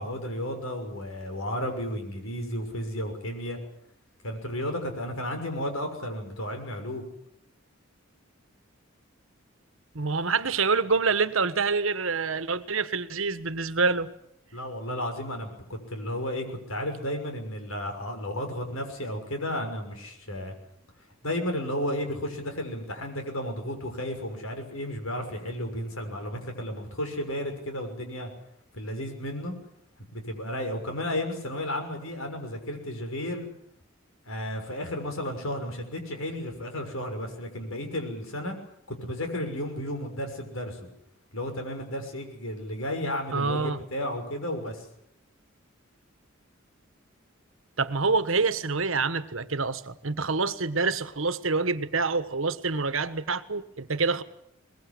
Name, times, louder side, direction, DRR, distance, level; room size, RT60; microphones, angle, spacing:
voice 1, 0.0-3.6 4.2-7.0 14.5-20.5 21.2-28.3 28.7-29.5 30.1-33.5 34.2-38.6 38.9-40.9 41.3-44.9, left 1 dB, 90° left, 6.2 m, -33 dB
voice 2, 9.9-14.1 43.3-43.8 47.8-54.2, right 4 dB, 75° right, 1.4 m, -26 dB
22.5 x 21.0 x 8.5 m
head